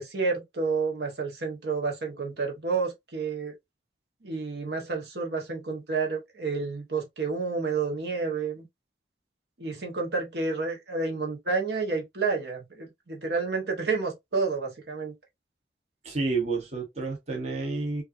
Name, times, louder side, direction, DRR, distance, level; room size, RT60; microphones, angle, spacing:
voice 1, 0.0-3.5 4.2-8.6 9.6-15.1, right 4 dB, 65° right, 1.3 m, -30 dB
voice 2, 16.0-18.0, right 3 dB, 40° right, 1.1 m, -30 dB
5.3 x 2.7 x 2.6 m
head